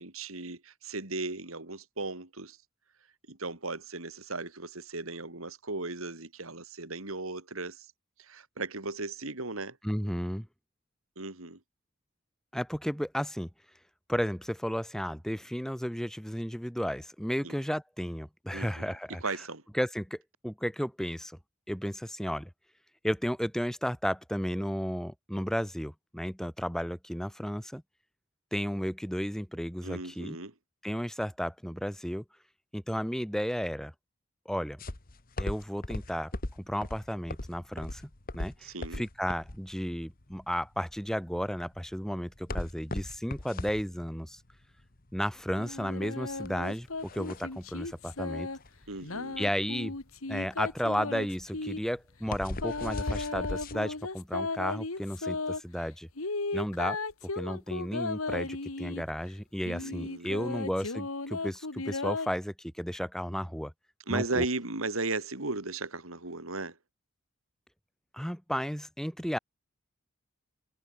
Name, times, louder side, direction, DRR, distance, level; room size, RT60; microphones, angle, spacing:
voice 1, 0.0-2.6 3.3-7.9 8.2-9.8 11.2-11.6 17.4-17.5 18.5-18.9 19.2-19.6 29.8-30.5 38.6-39.0 48.9-49.4 59.8-60.6 64.1-66.8, right 3 dB, 85° right, 3.3 m, -36 dB
voice 2, 9.8-10.5 12.5-13.5 14.1-19.3 19.7-21.4 21.7-22.5 23.0-27.8 28.5-30.4 30.8-32.2 32.7-33.9 34.4-34.8 35.4-36.3 36.6-38.0 38.3-44.4 45.1-48.5 49.4-50.0 50.3-56.1 56.5-63.7 64.1-64.4 68.1-69.4, equal, ahead, 4.4 m, -33 dB
sound 1, 34.8-53.8, left 1 dB, 40° left, 1.5 m, -39 dB
sound 2, 45.6-48.6 49.0-51.8 52.6-55.6 56.2-59.1 59.6-62.3, left 3 dB, 90° left, 2.2 m, -35 dB
head